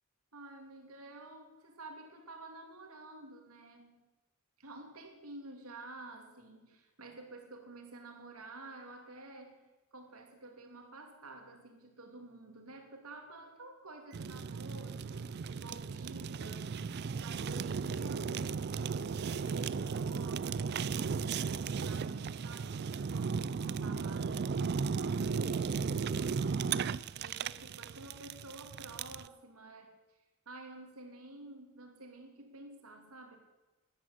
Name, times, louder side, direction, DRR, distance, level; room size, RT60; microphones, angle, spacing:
voice 1, 0.3-4.1 4.6-24.6 24.9-25.6 25.9-30.2 30.5-33.4, right 2 dB, 90° right, 4 dB, 2.7 m, -51 dB
Fire, 14.1-29.3, right 5 dB, 50° right, 0.4 m, -35 dB
12.5 x 11.5 x 8.0 m, 1.1 s
head